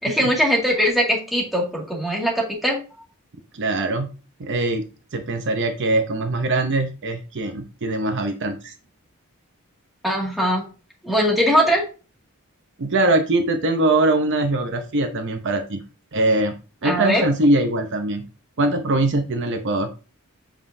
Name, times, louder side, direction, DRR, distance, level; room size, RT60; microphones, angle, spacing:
voice 1, 0.0-2.8 10.0-10.6 11.0-11.8 16.8-17.2, equal, ahead, -3 dB, 2.1 m, -21 dB
voice 2, 3.5-4.1 4.4-4.8 5.1-8.7 12.8-15.8 16.1-16.5 16.8-18.2 18.6-19.9, right 2 dB, 55° right, 6 dB, 0.7 m, -22 dB
7.4 x 5.3 x 2.7 m, 0.34 s
head